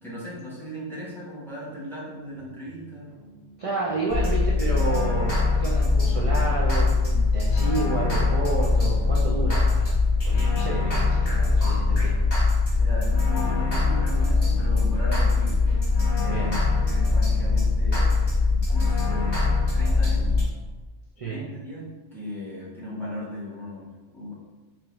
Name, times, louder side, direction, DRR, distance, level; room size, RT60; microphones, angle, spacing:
voice 1, 0.0-3.1 12.8-15.8 16.2-20.3 21.2-24.3, left 1 dB, ahead, -7 dB, 0.9 m, -37 dB
sound 1, 2.2-16.4, equal, 70° right, 1.2 m, -47 dB
voice 2, 3.6-12.2 16.3-16.5 21.2-21.5, right 3 dB, 45° right, -5 dB, 0.5 m, -30 dB
sound 2, 4.1-20.4, left 3 dB, 35° left, 1.1 m, -22 dB
3.6 x 3.1 x 3.1 m, 1.2 s
omnidirectional pair, 1.2 m